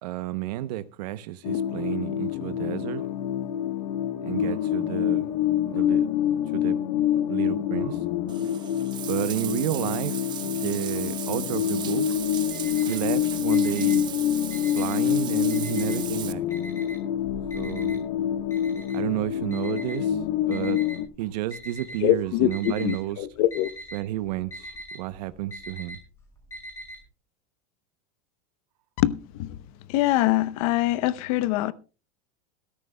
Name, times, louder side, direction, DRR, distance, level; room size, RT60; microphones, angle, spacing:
voice 1, 0.0-3.1 4.2-5.3 5.7-6.1 6.5-6.8 7.3-8.1 9.0-12.1 12.9-14.1 14.8-16.4 17.5-18.0 18.9-20.8 21.2-23.3 23.9-26.0, right 15 dB, 75° right, 0.8 m, -31 dB
sound 1, 1.4-21.1, left 11 dB, 75° left, 1.2 m, -27 dB
Bathtub (filling or washing), 8.3-16.3, right 10 dB, 20° right, 0.5 m, -37 dB
Alarm, 12.2-13.1 13.5-15.1 15.5-16.2 16.5-21.0 21.5-22.1 22.4-23.0 23.3-27.0, equal, 15° left, 5.9 m, -42 dB
voice 2, 22.0-23.7 29.0-29.6 29.9-31.7, left 14 dB, 55° left, 0.8 m, -24 dB
22.0 x 13.5 x 2.2 m
supercardioid pair, 160°, 21 cm